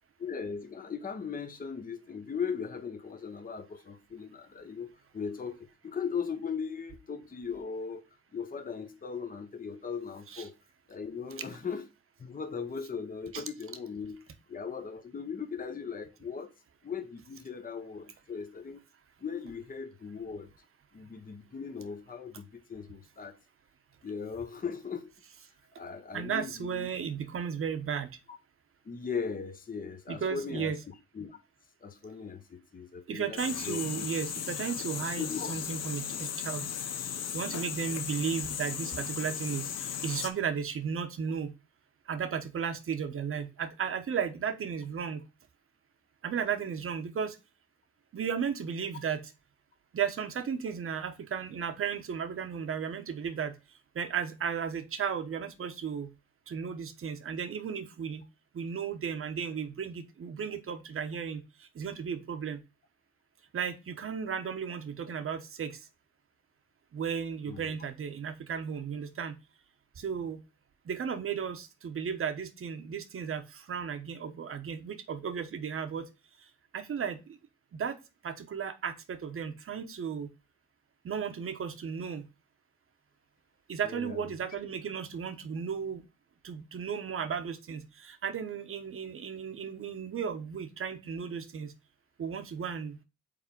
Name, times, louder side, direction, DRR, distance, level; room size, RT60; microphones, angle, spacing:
voice 1, 0.2-8.0 8.3-10.5 10.9-11.8 12.2-14.2 14.5-16.5 16.8-18.8 19.2-20.5 20.9-23.4 24.0-25.1 25.8-26.9 28.8-31.4 31.8-33.4 33.6-34.1 35.2-35.6 67.5-67.9 83.8-84.2, left 6 dB, 30° left, 0.9 m, -38 dB
voice 2, 26.1-28.1 30.1-30.8 33.1-36.7 37.3-41.5 42.1-45.2 46.2-47.4 48.1-49.2 49.9-53.6 53.9-56.1 56.5-58.2 58.5-62.6 63.5-65.9 66.9-69.4 70.0-70.4 70.8-76.1 76.7-77.4 77.7-78.0 78.2-80.3 81.0-82.3 83.7-86.0 86.4-91.7 92.2-93.0, right 7 dB, 45° right, 1.1 m, -34 dB
sound 1, 33.4-40.3, left 8 dB, 60° left, 0.8 m, -36 dB
5.1 x 4.0 x 5.3 m
cardioid pair, 90°, 30 cm